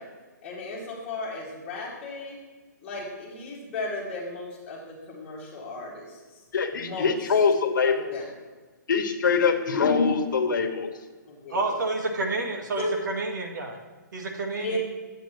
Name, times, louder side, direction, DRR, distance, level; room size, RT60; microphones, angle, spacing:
voice 1, 0.4-2.4 2.8-6.4 6.7-7.1 7.8-8.2 11.3-11.7 12.8-13.0 14.5-14.8, left 2 dB, 10° left, -9 dB, 2.1 m, -35 dB
voice 2, 6.5-8.1 8.9-10.9, left 5 dB, 75° left, 5 dB, 1.2 m, -23 dB
voice 3, 11.5-13.8 14.1-14.8, right 2 dB, 65° right, 3 dB, 1.6 m, -29 dB
10.0 x 8.1 x 3.0 m, 1.3 s
hypercardioid pair, 165°, 10 cm